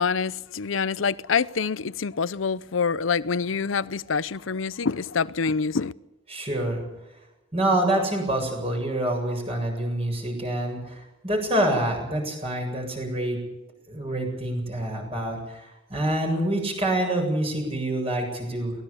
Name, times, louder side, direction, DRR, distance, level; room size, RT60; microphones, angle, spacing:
voice 1, 0.0-5.9, left 5 dB, 90° left, 0.6 m, -26 dB
voice 2, 6.3-6.8 7.5-13.4 13.9-18.8, right 1 dB, 30° right, 7.8 m, -26 dB
23.5 x 19.0 x 7.0 m
head